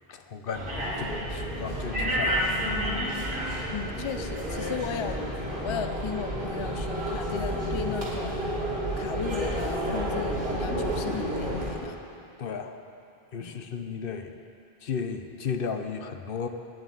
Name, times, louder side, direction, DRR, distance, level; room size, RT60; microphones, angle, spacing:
voice 1, 0.1-3.2 12.4-12.8 13.3-14.4 14.8-16.5, left 6 dB, 65° left, 7 dB, 0.9 m, -35 dB
sound 1, 0.5-11.7, equal, 55° right, 2.8 m, -30 dB
voice 2, 3.7-5.2 5.6-8.4 9.0-12.0 13.4-13.6, left 6 dB, 40° left, 7 dB, 0.5 m, -36 dB
9.3 x 9.1 x 9.2 m, 2.6 s
omnidirectional pair, 1.0 m